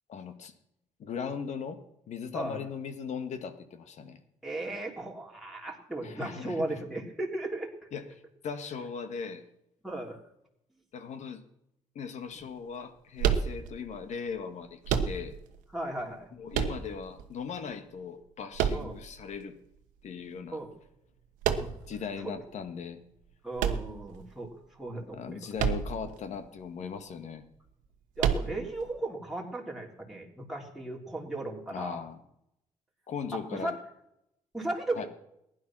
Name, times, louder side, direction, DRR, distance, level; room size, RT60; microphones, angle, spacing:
voice 1, 0.1-0.5 1.0-1.8 2.1-4.2 6.0-6.8 7.9-9.4 10.9-11.4 11.9-15.4 16.3-19.6 20.0-20.6 21.9-23.0 25.1-27.5 31.7-32.2 33.1-33.7 34.9-35.1, left 6 dB, 65° left, 10 dB, 1.7 m, -38 dB
voice 2, 4.4-7.7 9.8-10.2 15.7-16.3 18.7-18.9 20.5-20.7 21.5-21.7 22.2-22.4 23.4-25.4 28.2-32.0 33.3-33.8 34.5-35.1, right 2 dB, ahead, -2 dB, 3.5 m, -36 dB
sound 1, 13.2-14.0 14.8-15.6 16.5-17.2 18.5-19.4 21.4-22.0 23.6-24.4 25.6-26.1 26.4-26.5 28.2-28.8, right 8 dB, 90° right, 1.2 m, -29 dB
15.5 x 11.0 x 6.1 m, 0.81 s
supercardioid pair, 70°, 13 cm